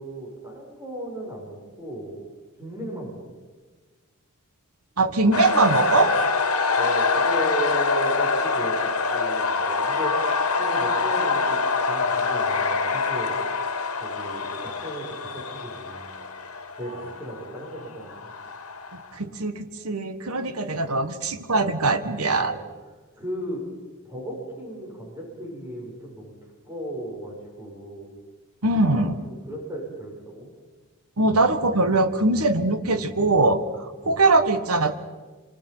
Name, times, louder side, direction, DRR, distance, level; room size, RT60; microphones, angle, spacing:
voice 1, 0.0-2.2 2.6-3.3 6.8-13.4 14.0-16.2 16.8-18.3 22.3-22.6 23.2-23.7 24.0-28.2 28.9-30.5 34.0-34.4, equal, 15° right, -2 dB, 7.6 m, -35 dB
voice 2, 5.0-6.1 19.1-22.6 28.6-29.1 31.2-34.9, right 2 dB, 85° right, 9 dB, 1.6 m, -22 dB
sound 1, 5.3-19.1, left 4 dB, 80° left, 2.2 m, -25 dB
26.5 x 26.5 x 5.9 m, 1.3 s
head